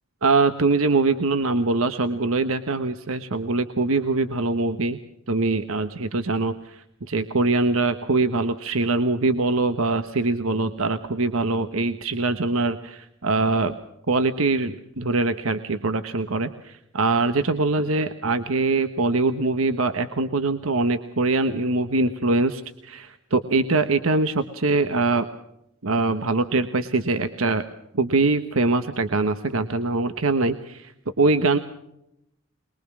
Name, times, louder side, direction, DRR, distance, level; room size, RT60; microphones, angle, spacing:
voice 1, 0.2-5.0 5.3-13.7 14.1-25.3 25.8-27.6 27.9-30.9 31.2-31.6, right 3 dB, 85° right, 9 dB, 1.2 m, -23 dB
22.5 x 22.5 x 6.2 m, 0.80 s
head